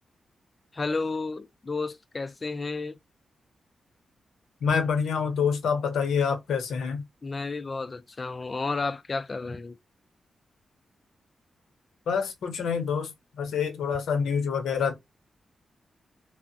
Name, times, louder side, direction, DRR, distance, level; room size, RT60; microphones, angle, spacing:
voice 1, 0.7-3.0 7.2-9.8, left 3 dB, 35° left, 0.4 m, -32 dB
voice 2, 4.6-7.0 12.1-13.1 13.4-14.9, left 6 dB, 90° left, 0.7 m, -26 dB
3.3 x 2.0 x 2.7 m
cardioid pair, 75°, 0 cm